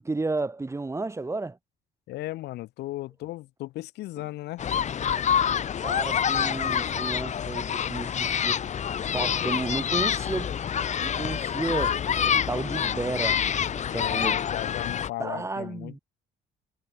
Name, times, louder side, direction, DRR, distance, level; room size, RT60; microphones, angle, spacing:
voice 1, 0.0-1.6 5.8-8.6 9.1-10.6 11.0-12.0 12.3-13.4 13.7-14.4 15.2-16.0, right 3 dB, 15° right, 7.9 m, -32 dB
voice 2, 2.1-4.6 13.9-16.0, left 17 dB, 80° left, 5.9 m, -36 dB
sound 1, 4.6-15.1, left 8 dB, 45° left, 2.5 m, -27 dB
cardioid pair, 110°, 17 cm